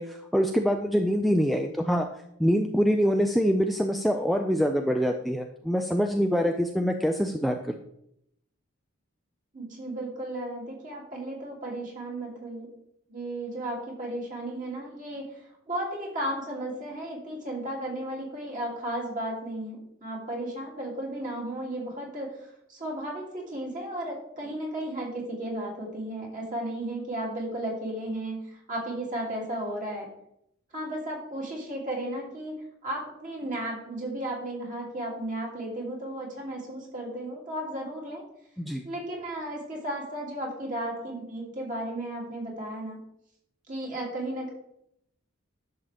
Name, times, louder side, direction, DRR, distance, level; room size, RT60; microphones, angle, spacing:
voice 1, 0.0-2.1 2.4-7.6 38.6-38.8, equal, ahead, 3 dB, 0.4 m, -25 dB
voice 2, 9.5-12.7 13.1-30.1 30.7-32.5 32.8-38.2 38.8-43.0 43.7-44.5, right 1 dB, 40° right, -3 dB, 2.8 m, -34 dB
11.0 x 6.9 x 3.4 m, 0.76 s
head